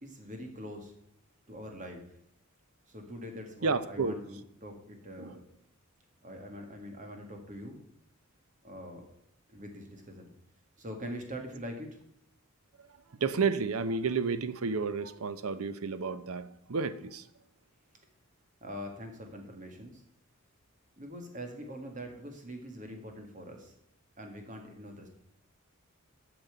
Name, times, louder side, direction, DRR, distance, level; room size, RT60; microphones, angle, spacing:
voice 1, 0.0-0.9 1.5-2.0 2.9-5.4 6.2-7.8 8.6-9.0 9.5-10.3 10.8-12.0 18.6-20.0 21.0-23.7 24.2-25.1, equal, 35° right, 3 dB, 2.0 m, -43 dB
voice 2, 3.6-4.1 5.2-5.4 13.2-17.3, right 4 dB, 80° right, 14 dB, 0.7 m, -31 dB
8.7 x 6.0 x 8.0 m, 0.73 s
head